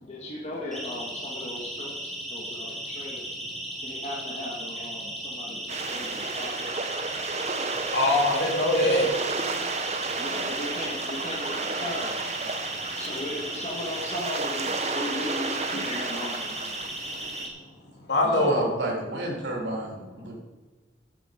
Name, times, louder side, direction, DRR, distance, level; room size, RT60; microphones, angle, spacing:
voice 1, 0.0-3.4 3.8-6.9 10.2-12.5 13.0-16.5, left 1 dB, 35° left, -3 dB, 1.7 m, -37 dB
Siren, 0.7-17.5, right 1 dB, ahead, 2.1 m, -36 dB
sound 1, 5.7-17.5, right 4 dB, 35° right, 0.8 m, -32 dB
voice 2, 7.9-9.1 18.1-18.7, left 1 dB, 75° left, -1 dB, 2.7 m, -22 dB
voice 3, 18.3-20.4, right 1 dB, 80° right, -1 dB, 3.1 m, -30 dB
12.0 x 7.6 x 5.1 m, 1.3 s
head